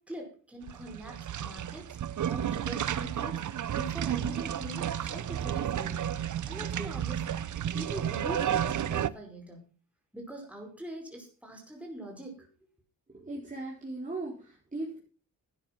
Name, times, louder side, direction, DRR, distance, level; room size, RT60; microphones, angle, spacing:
voice 1, 0.0-1.8 2.3-6.1 6.5-7.3 7.7-9.6 10.1-12.5, right 1 dB, 5° right, 1 dB, 5.0 m, -43 dB
sound 1, 0.6-9.1, right 10 dB, 55° right, 0.7 m, -32 dB
voice 2, 13.1-15.0, right 2 dB, 20° right, -4 dB, 4.8 m, -38 dB
12.5 x 9.8 x 6.0 m, 0.37 s
cardioid pair, 80°, 35 cm